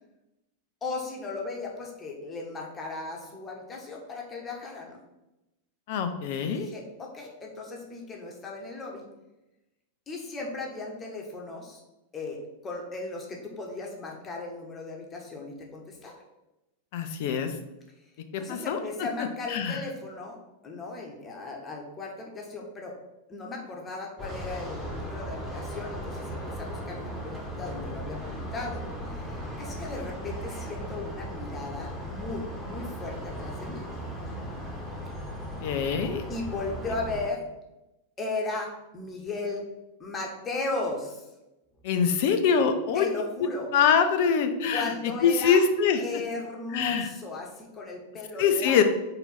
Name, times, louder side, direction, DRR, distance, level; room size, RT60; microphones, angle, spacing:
voice 1, 0.8-5.0 6.4-9.1 10.1-11.8 12.1-16.2 18.4-20.4 20.6-22.9 23.3-28.8 29.1-33.8 36.3-37.4 38.2-39.6 40.0-41.3 42.9-43.7 44.7-45.6 46.0-48.8, left 3 dB, 20° left, 0 dB, 1.3 m, -36 dB
voice 2, 5.9-6.7 16.9-17.5 18.3-18.8 19.5-19.8 35.6-36.2 41.8-43.1 43.7-44.9 45.2-46.0 46.7-47.1 48.4-48.8, left 6 dB, 50° left, 7 dB, 0.6 m, -24 dB
sound 1, 24.2-37.3, equal, ahead, 1.8 m, -37 dB
4.5 x 3.9 x 5.6 m, 0.96 s
figure-of-eight pair, 90°, 0 cm